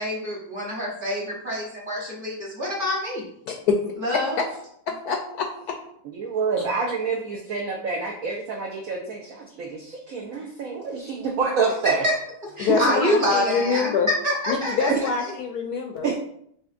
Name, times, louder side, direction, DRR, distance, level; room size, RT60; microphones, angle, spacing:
voice 1, 0.0-3.2 4.0-4.4 11.8-12.1 12.6-13.9 14.2-15.1, equal, 35° right, -4 dB, 1.1 m, -26 dB
voice 2, 3.5-3.8 4.4-4.5 4.9-5.8 9.0-9.1 12.6-14.1 14.5-16.1, left 5 dB, 70° left, 2 dB, 0.9 m, -25 dB
voice 3, 6.2-12.0 12.7-12.8 14.9-15.0 16.0-16.1, right 5 dB, 70° right, 0 dB, 0.8 m, -27 dB
6.8 x 2.8 x 2.5 m, 0.69 s
omnidirectional pair, 2.0 m